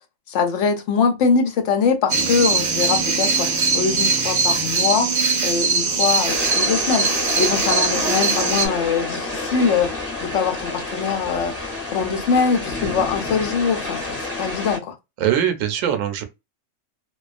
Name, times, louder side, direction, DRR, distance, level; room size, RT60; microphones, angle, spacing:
voice 1, 0.3-10.0 10.2-15.0, left 5 dB, 70° left, 0.9 m, -22 dB
sound 1, 2.1-8.7, right 4 dB, 40° right, 0.7 m, -21 dB
sound 2, 6.3-14.8, left 2 dB, 15° left, 0.7 m, -29 dB
voice 2, 15.2-16.2, right 10 dB, 80° right, 1.0 m, -21 dB
2.3 x 2.2 x 2.3 m
omnidirectional pair, 1.3 m